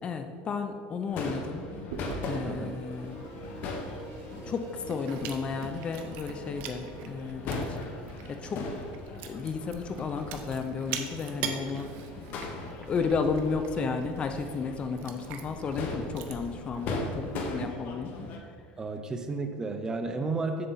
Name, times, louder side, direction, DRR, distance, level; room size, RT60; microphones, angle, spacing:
voice 1, 0.0-1.7 2.3-3.2 4.4-7.9 8.3-8.6 9.2-11.9 12.9-18.1 20.2-20.3, left 5 dB, 30° left, 7 dB, 0.6 m, -33 dB
Crowd / Fireworks, 1.1-18.4, left 2 dB, 50° left, 1.2 m, -39 dB
sound 1, 1.2-7.3, right 2 dB, 80° right, 1.9 m, -47 dB
Chewing mastication, 1.9-17.6, right 7 dB, 60° right, 0.8 m, -44 dB
voice 2, 2.4-2.8 18.8-20.7, right 3 dB, 15° right, 7 dB, 0.6 m, -32 dB
7.6 x 7.0 x 4.0 m, 2.1 s
supercardioid pair, 135°, 4 cm